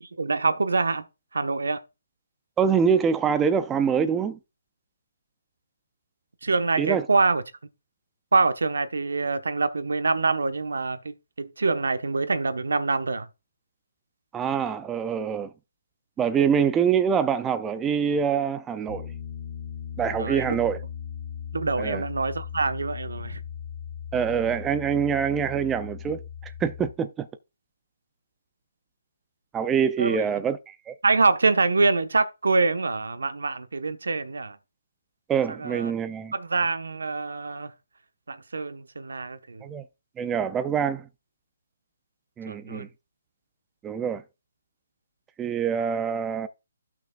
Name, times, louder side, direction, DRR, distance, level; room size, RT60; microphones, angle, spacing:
voice 1, 0.2-1.0 1.3-1.8 6.4-7.4 8.3-13.3 20.2-20.6 21.5-23.4 30.0-30.2 31.0-34.6 35.5-35.9 36.3-37.7 38.3-39.7 42.5-42.9, right 3 dB, 90° right, 1.1 m, -25 dB
voice 2, 2.6-4.4 6.8-7.0 14.3-15.5 16.2-19.1 20.0-20.8 21.8-22.0 24.1-27.3 29.5-30.9 35.3-36.3 39.6-39.8 40.2-41.1 42.4-42.9 43.8-44.2 45.4-46.5, right 7 dB, 10° right, 0.4 m, -25 dB
Piano, 18.9-26.9, left 8 dB, 30° left, 1.5 m, -38 dB
14.0 x 5.9 x 2.4 m
hypercardioid pair, 165°, 0 cm